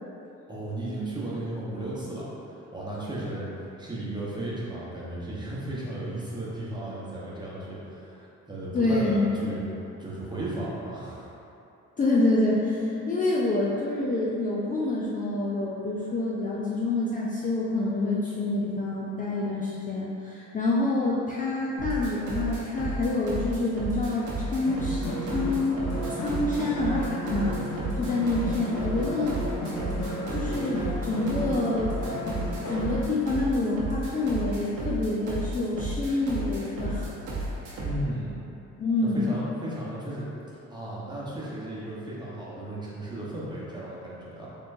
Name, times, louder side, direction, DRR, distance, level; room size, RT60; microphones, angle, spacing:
voice 1, 0.5-9.6 10.0-11.3 37.8-38.3 39.0-40.3 40.7-44.5, right 1 dB, 15° right, -7 dB, 1.0 m, -35 dB
voice 2, 8.7-9.4 12.0-27.5 28.0-29.4 30.3-31.9 32.7-37.1 38.8-39.4, left 2 dB, 25° left, -6 dB, 0.4 m, -27 dB
sound 1, 21.8-38.1, right 1 dB, 90° right, 0.9 m, -33 dB
sound 2, 24.7-33.0, equal, 75° left, 1.0 m, -34 dB
4.2 x 3.1 x 2.6 m, 2.9 s
cardioid pair, 90°, 30 cm